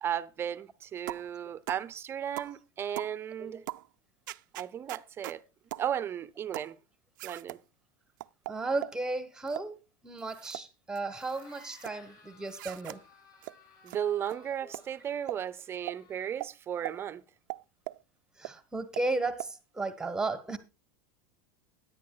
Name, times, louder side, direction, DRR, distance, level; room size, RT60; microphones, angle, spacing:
voice 1, 0.0-3.6 4.6-5.4 5.8-6.8 7.2-7.6 13.8-17.2, right 9 dB, 25° right, 0.7 m, -35 dB
sound 1, 1.1-1.3 1.7-1.9 2.4-2.6 3.0-3.2 3.7-3.9 4.3-5.4 5.7-5.9 6.5-6.7 7.2-7.6 8.2-9.0 9.5-9.7 10.2-10.7 11.0-11.9 12.5-13.0 13.4-13.5 13.9-14.0 14.3-14.4 14.7-14.8 15.3-15.4 15.9-16.0 16.4-16.5 16.9-17.0 17.5-18.0 18.4-18.5 19.0-19.1 19.4-19.5, right 19 dB, 75° right, 0.4 m, -40 dB
voice 2, 8.5-13.0 14.6-14.7 18.4-20.6, right 3 dB, 5° right, 1.2 m, -34 dB
sound 2, 11.0-16.4, left 3 dB, 35° left, 7.9 m, -58 dB
17.0 x 10.5 x 2.3 m
supercardioid pair, 150°, 11 cm